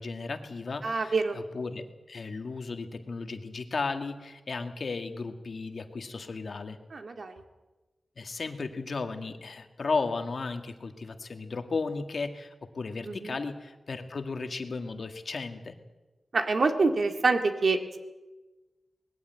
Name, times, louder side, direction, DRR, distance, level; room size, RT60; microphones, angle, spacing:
voice 1, 0.0-6.8 8.2-15.8, left 4 dB, 65° left, 6 dB, 1.8 m, -35 dB
voice 2, 0.8-1.4 6.9-7.4 13.1-13.3 16.3-18.0, right 3 dB, 60° right, 6 dB, 2.0 m, -26 dB
20.0 x 15.0 x 9.1 m, 1.2 s
wide cardioid pair, 90°, 0 cm